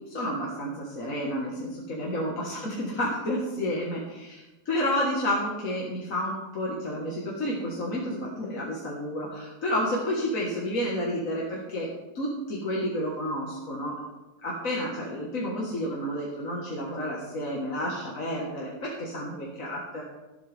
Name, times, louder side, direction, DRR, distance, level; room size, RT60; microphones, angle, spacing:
voice 1, 0.1-11.9 12.1-14.0 14.4-20.0, equal, 40° left, -4 dB, 1.9 m, -30 dB
14.0 x 12.0 x 3.6 m, 1.1 s
omnidirectional pair, 2.4 m